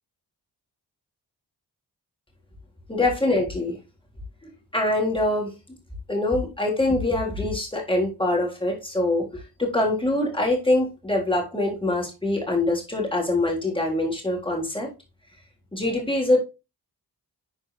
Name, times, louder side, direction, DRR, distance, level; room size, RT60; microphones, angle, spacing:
voice 1, 2.9-3.8 4.4-5.5 6.1-14.9 15.7-16.4, left 2 dB, 15° left, -1 dB, 3.5 m, -24 dB
11.0 x 4.4 x 3.2 m, 0.28 s
cardioid pair, 60°, 39 cm